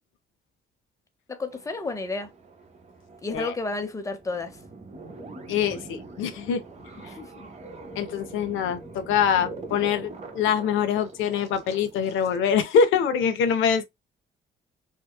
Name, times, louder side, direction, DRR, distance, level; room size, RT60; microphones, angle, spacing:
voice 1, 1.3-2.3 3.2-4.5 7.2-7.5, left 3 dB, 15° left, 0.6 m, -31 dB
sound 1, 1.5-12.4, right 3 dB, 35° right, 0.8 m, -43 dB
voice 2, 5.5-6.6 7.0-7.1 8.0-13.8, left 7 dB, 80° left, 0.4 m, -24 dB
2.7 x 2.2 x 2.2 m
cardioid pair, 90°, 20 cm